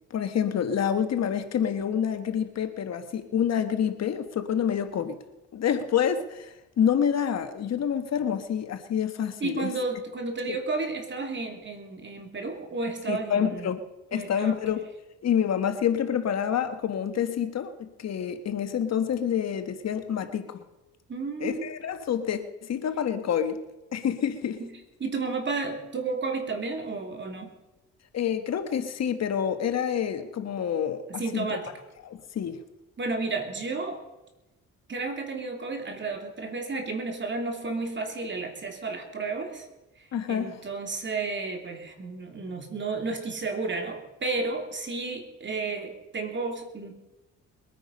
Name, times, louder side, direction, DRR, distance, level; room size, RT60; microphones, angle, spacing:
voice 1, 0.1-5.2 5.5-9.7 10.5-10.6 13.1-13.8 14.1-14.8 15.2-20.6 21.4-23.6 23.9-24.6 28.1-31.5 32.0-32.6 40.1-40.6, left 8 dB, 60° left, 8 dB, 1.3 m, -27 dB
voice 2, 9.4-13.7 14.1-14.6 21.1-21.7 24.6-24.7 25.0-27.5 31.1-31.7 33.0-34.0 34.9-39.7 40.0-46.9, right 3 dB, 40° right, 4 dB, 2.9 m, -32 dB
21.5 x 9.3 x 5.4 m, 1.0 s
cardioid pair, 90°, 30 cm